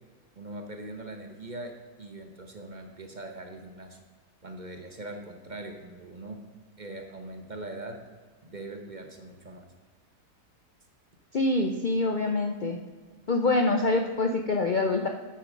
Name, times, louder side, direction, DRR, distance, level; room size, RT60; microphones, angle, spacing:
voice 1, 0.4-1.7 2.0-4.0 4.4-6.4 6.8-8.0 8.4-9.7, right 2 dB, 35° right, 4 dB, 0.8 m, -41 dB
voice 2, 11.3-12.8 13.3-15.1, left 2 dB, 85° left, 4 dB, 0.4 m, -25 dB
8.7 x 8.5 x 5.2 m, 1.5 s
omnidirectional pair, 1.7 m